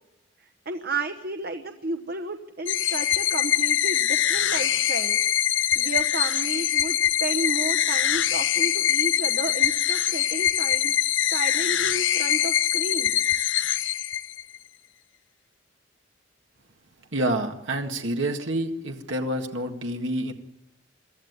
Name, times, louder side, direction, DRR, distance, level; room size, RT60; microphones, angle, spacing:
voice 1, 0.7-5.2 5.7-11.0 11.3-13.2, right 2 dB, 55° right, 6 dB, 1.1 m, -32 dB
sound 1, 2.7-14.6, left 11 dB, 80° left, 0.7 m, -23 dB
voice 2, 17.1-20.3, right 1 dB, 80° right, 3 dB, 1.9 m, -28 dB
23.5 x 14.0 x 9.5 m, 0.92 s
head